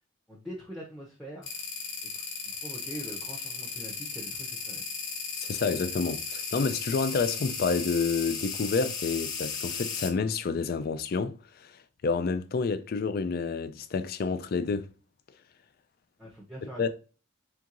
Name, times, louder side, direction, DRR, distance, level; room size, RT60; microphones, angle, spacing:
voice 1, 0.3-1.6 2.1-4.8 16.2-16.9, equal, ahead, 0.7 m, -43 dB
sound 1, 1.4-10.1, left 5 dB, 75° left, 1.0 m, -35 dB
voice 2, 5.4-11.7 12.0-14.9 16.8-16.9, left 4 dB, 50° left, 0.4 m, -29 dB
4.4 x 3.6 x 2.5 m
head